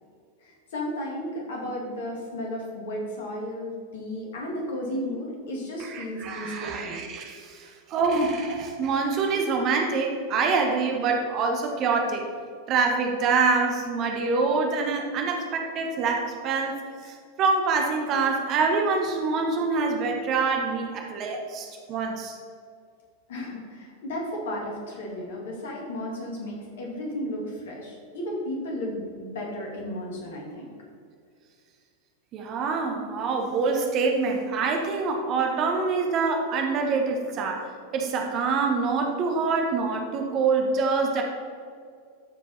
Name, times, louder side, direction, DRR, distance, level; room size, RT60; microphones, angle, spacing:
voice 1, 0.4-7.0 23.3-30.7, left 1 dB, 60° left, -1 dB, 2.4 m, -34 dB
voice 2, 5.8-12.3 12.7-22.4 32.3-37.7 37.9-41.2, right 4 dB, 35° right, 2 dB, 1.2 m, -25 dB
13.0 x 5.1 x 4.2 m, 2.2 s
figure-of-eight pair, 90°, 0 cm